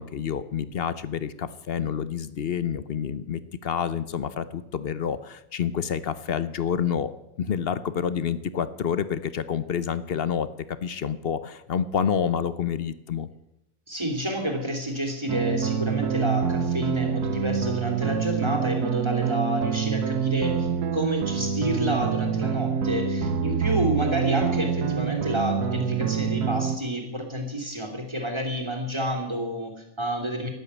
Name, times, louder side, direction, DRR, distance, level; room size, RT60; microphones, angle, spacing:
voice 1, 0.0-7.1 7.4-10.5 10.8-13.3, left 8 dB, 50° left, 14 dB, 0.8 m, -28 dB
voice 2, 13.9-30.5, equal, 15° right, 2 dB, 2.9 m, -29 dB
sound 1, 15.3-26.8, right 7 dB, 90° right, 1.5 m, -26 dB
12.5 x 12.0 x 8.2 m, 0.88 s
omnidirectional pair, 1.6 m